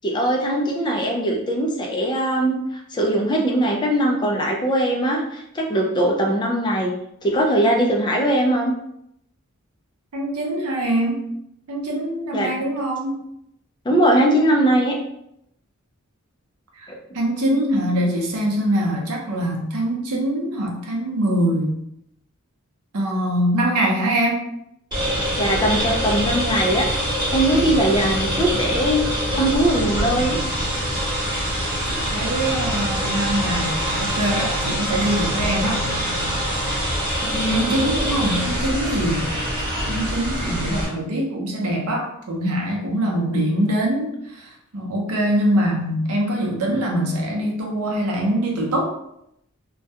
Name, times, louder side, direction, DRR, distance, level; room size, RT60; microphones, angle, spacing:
voice 1, 0.0-2.6 2.9-6.9 7.2-8.7 12.3-12.5 13.9-15.0 16.9-17.0 25.4-26.8 27.1-30.4 37.3-37.7, right 1 dB, 20° left, 1 dB, 0.3 m, -20 dB
voice 2, 10.1-11.2 11.7-13.1 16.8-16.9 17.1-21.8 22.9-24.5 31.9-35.8 37.2-39.3 39.9-48.9, right 1 dB, 85° right, 0 dB, 0.6 m, -23 dB
sound 1, 24.9-40.8, equal, 20° right, 0.9 m, -24 dB
2.3 x 2.1 x 2.7 m, 0.77 s
head